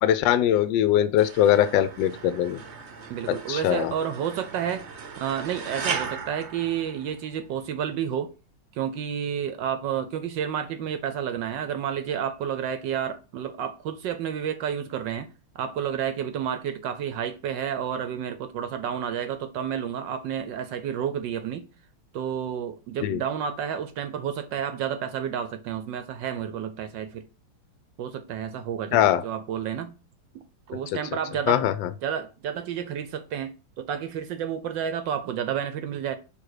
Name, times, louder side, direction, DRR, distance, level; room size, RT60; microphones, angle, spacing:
voice 1, 0.0-2.6 3.3-3.9 23.0-23.2 28.9-29.2 31.5-31.9, left 11 dB, 75° left, 1.1 m, -21 dB
sound 1, 1.2-7.5, right 5 dB, 55° right, 0.7 m, -37 dB
voice 2, 3.1-4.9 5.2-8.3 8.7-15.3 15.5-21.6 22.1-27.2 28.0-30.0 30.7-31.6 32.0-36.2, right 8 dB, 75° right, 1.1 m, -30 dB
5.5 x 3.5 x 4.8 m
omnidirectional pair, 2.3 m